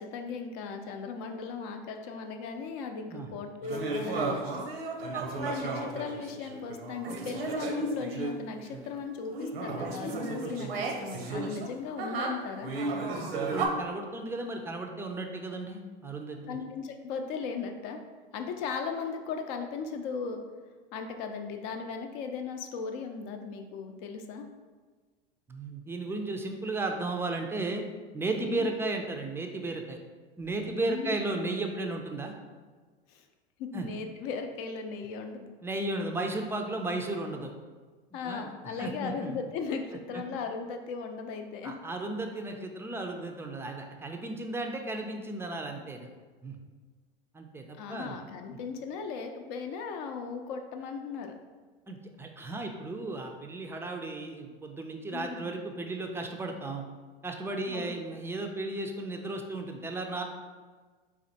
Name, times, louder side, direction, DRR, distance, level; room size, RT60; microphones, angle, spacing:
voice 1, 0.0-4.7 5.4-12.7 16.5-18.0 18.3-20.4 20.9-24.5 28.5-28.7 30.8-31.2 33.1-33.2 33.6-35.5 38.1-41.8 47.8-51.3 55.1-55.5 57.7-58.0, left 5 dB, 55° left, 5 dB, 0.6 m, -37 dB
sound 1, 3.6-8.9 9.3-13.7, right 3 dB, 85° right, 0.7 m, -34 dB
voice 2, 13.5-16.6 25.5-27.8 28.1-30.0 30.4-32.3 33.7-33.9 35.6-37.5 38.1-39.3 41.6-46.1 46.4-46.5 47.3-48.2 51.9-56.8 57.2-60.2, right 2 dB, 10° right, 3 dB, 0.4 m, -34 dB
4.1 x 2.5 x 4.0 m, 1.4 s
hypercardioid pair, 85°, 29 cm